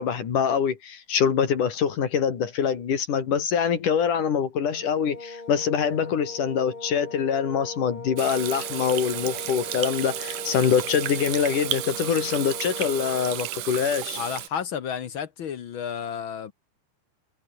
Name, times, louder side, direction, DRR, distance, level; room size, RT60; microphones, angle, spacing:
voice 1, 0.0-14.2, left 7 dB, 80° left, 4.4 m, -24 dB
sound 1, 4.7-13.4, left 2 dB, 15° left, 2.0 m, -40 dB
Water tap faucet / Sink (filling or washing), 8.2-14.5, right 13 dB, 80° right, 2.7 m, -33 dB
voice 2, 14.1-16.5, left 8 dB, 60° left, 1.4 m, -32 dB
omnidirectional pair, 3.6 m